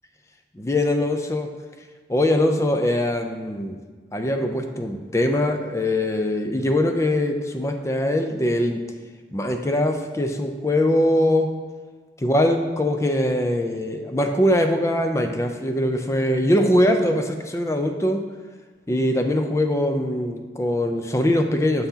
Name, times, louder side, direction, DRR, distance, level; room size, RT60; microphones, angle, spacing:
voice 1, 0.6-1.5 2.1-3.8 4.1-8.8 9.3-11.5 12.2-18.2 18.9-21.9, left 1 dB, 15° left, 5 dB, 0.4 m, -22 dB
6.9 x 5.8 x 2.8 m, 1.5 s
head